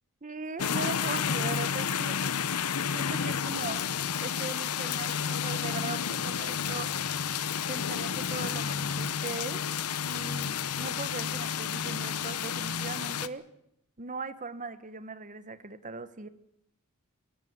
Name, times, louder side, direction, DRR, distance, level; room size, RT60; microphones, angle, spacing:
voice 1, 0.2-2.2 2.9-3.8 4.2-6.9 7.7-9.6 10.1-13.4 14.0-16.3, right 4 dB, 35° right, 13 dB, 1.1 m, -39 dB
sound 1, 0.6-13.3, left 7 dB, 85° left, 0.9 m, -31 dB
23.0 x 17.0 x 8.0 m, 0.79 s
head